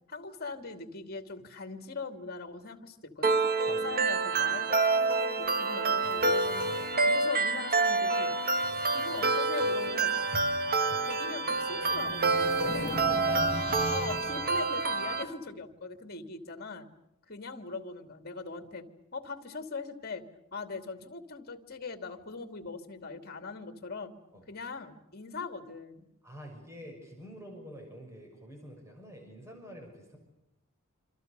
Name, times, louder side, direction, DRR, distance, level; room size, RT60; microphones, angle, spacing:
voice 1, 0.1-6.7 7.1-8.4 8.9-10.2 11.0-13.2 13.9-16.9 17.3-18.8 19.1-20.2 20.5-24.2 24.5-26.1, left 4 dB, 45° left, 8 dB, 2.5 m, -41 dB
sound 1, 3.2-15.2, right 3 dB, 45° right, 1.7 m, -28 dB
sound 2, 6.0-14.7, right 1 dB, 90° right, 7.2 m, -50 dB
voice 2, 6.6-7.1 12.6-13.8 24.3-24.5 26.2-30.2, equal, 15° right, 2 dB, 6.2 m, -47 dB
sound 3, 11.3-15.2, left 2 dB, 30° left, 1.5 m, -39 dB
27.0 x 27.0 x 6.8 m, 0.85 s
head